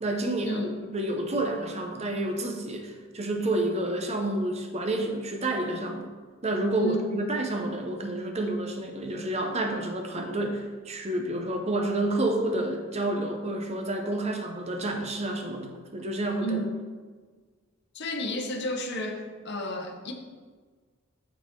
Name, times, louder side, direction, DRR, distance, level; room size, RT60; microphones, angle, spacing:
voice 1, 0.0-6.1 6.4-16.6, right 1 dB, 30° right, 3 dB, 0.7 m, -29 dB
voice 2, 17.9-20.1, equal, 55° left, 3 dB, 0.8 m, -32 dB
9.0 x 4.1 x 3.7 m, 1.5 s
head